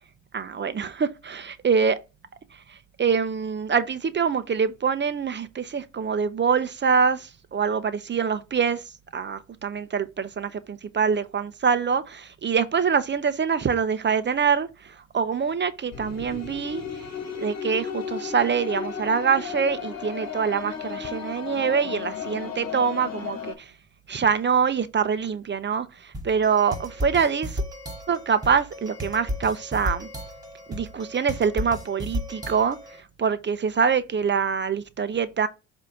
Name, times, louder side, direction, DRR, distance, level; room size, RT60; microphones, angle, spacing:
voice 1, 0.3-2.0 2.7-8.8 9.1-16.8 17.4-23.7 24.1-27.6 28.1-30.1 30.7-32.8 33.2-35.5, right 6 dB, 35° right, 0.7 m, -25 dB
sound 1, 15.9-23.5, left 7 dB, 60° left, 1.5 m, -34 dB
sound 2, 26.1-33.0, equal, 10° right, 2.3 m, -34 dB
7.5 x 2.8 x 4.8 m
cardioid pair, 90°, 30 cm